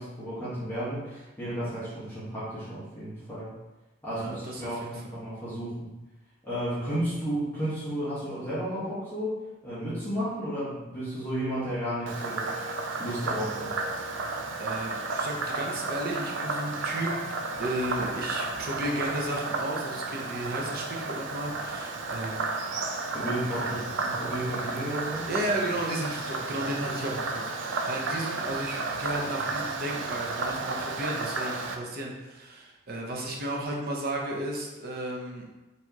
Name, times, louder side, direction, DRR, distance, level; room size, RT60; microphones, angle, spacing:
voice 1, 0.0-3.5 4.0-5.9 6.4-13.8 23.1-25.3, right 1 dB, 10° left, -12 dB, 1.3 m, -33 dB
voice 2, 4.1-4.9 14.6-17.2 17.6-22.5 23.5-23.7 25.3-35.4, right 1 dB, 50° right, -1 dB, 0.8 m, -33 dB
Frog, 12.1-31.7, right 3 dB, 75° right, 0.5 m, -33 dB
4.5 x 3.4 x 2.9 m, 1.1 s
head